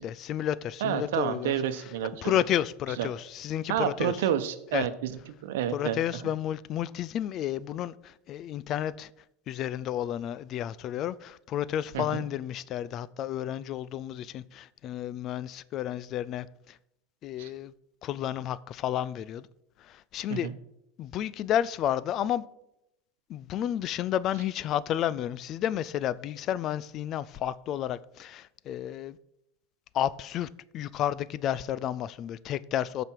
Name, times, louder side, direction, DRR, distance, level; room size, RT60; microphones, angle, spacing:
voice 1, 0.0-1.6 2.2-4.1 4.7-4.9 5.7-9.1 9.5-16.5 17.2-17.7 18.0-19.5 19.9-20.5 21.0-22.4 23.3-29.2 29.9-30.5 30.7-33.0, left 11 dB, 35° left, 0.3 m, -31 dB
voice 2, 0.8-2.3 3.0-3.1 3.7-6.0 11.9-12.2 17.4-17.5 20.3-20.5, right 10 dB, 80° right, 0.9 m, -30 dB
14.0 x 5.1 x 4.6 m
supercardioid pair, 145°, 0 cm